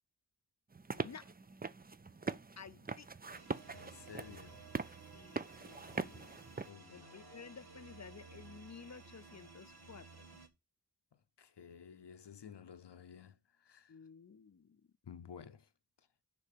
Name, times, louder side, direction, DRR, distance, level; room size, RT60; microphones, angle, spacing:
sound 1, 0.7-6.7, right 4 dB, 25° right, 0.4 m, -43 dB
voice 1, 0.9-1.3 2.6-3.1 5.1-6.4 6.9-10.4 13.9-14.8, left 6 dB, 45° left, 0.6 m, -54 dB
sound 2, 3.3-10.5, right 4 dB, 70° right, 1.4 m, -56 dB
voice 2, 3.7-5.0 6.6-7.6 11.1-14.0 15.0-15.7 16.0-16.1, left 7 dB, 90° left, 0.8 m, -54 dB
6.7 x 5.4 x 6.6 m
wide cardioid pair, 60°, 40 cm